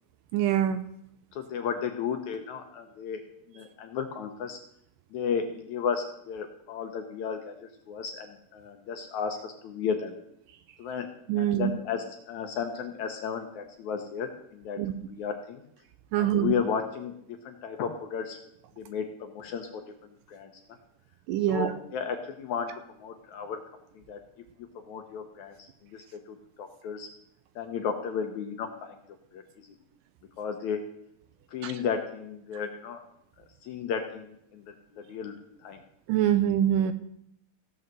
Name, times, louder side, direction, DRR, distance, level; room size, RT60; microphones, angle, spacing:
voice 1, 0.3-0.8 11.3-11.7 14.8-14.9 16.1-16.5 21.3-21.7 31.6-31.7 36.1-36.9, right 11 dB, 75° right, 10 dB, 2.1 m, -24 dB
voice 2, 1.3-3.2 3.5-4.6 5.1-10.1 10.8-11.1 11.4-14.8 15.1-15.6 16.2-17.1 17.4-18.4 18.8-20.6 21.5-22.7 23.0-23.6 24.1-24.2 24.8-27.1 27.6-29.0 29.3-29.7 30.4-30.8 31.5-33.0 33.6-35.4 35.6-35.8, left 6 dB, 70° left, 5 dB, 1.9 m, -34 dB
15.0 x 5.6 x 7.5 m, 0.74 s
omnidirectional pair, 4.1 m